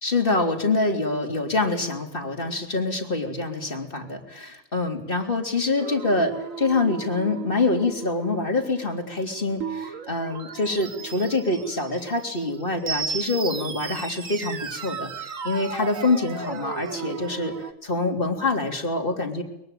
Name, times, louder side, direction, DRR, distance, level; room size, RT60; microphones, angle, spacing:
voice 1, 0.0-15.1 15.4-17.5 17.8-19.4, left 3 dB, 40° left, 3 dB, 3.6 m, -25 dB
sound 1, 5.8-17.7, right 6 dB, 80° right, 1.8 m, -35 dB
23.0 x 23.0 x 9.2 m, 0.83 s
omnidirectional pair, 1.4 m